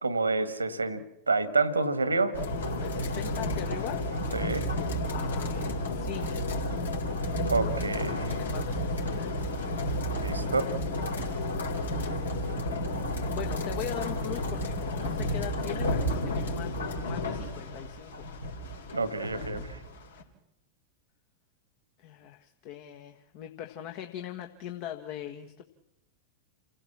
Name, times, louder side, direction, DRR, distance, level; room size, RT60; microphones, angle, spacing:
voice 1, 0.0-2.3 4.3-4.7 7.4-8.2 10.1-10.7 18.9-19.6, right 3 dB, 80° right, 15 dB, 1.7 m, -28 dB
sound 1, 2.3-20.2, left 1 dB, 70° left, 3.9 m, -31 dB
voice 2, 2.8-4.0 5.1-6.3 7.6-9.3 13.3-18.2 18.5-18.7 19.4-19.6 20.0-20.1 22.0-25.6, left 11 dB, 45° left, 5 dB, 1.5 m, -41 dB
29.0 x 16.5 x 7.4 m, 0.89 s
figure-of-eight pair, 90°, 0 cm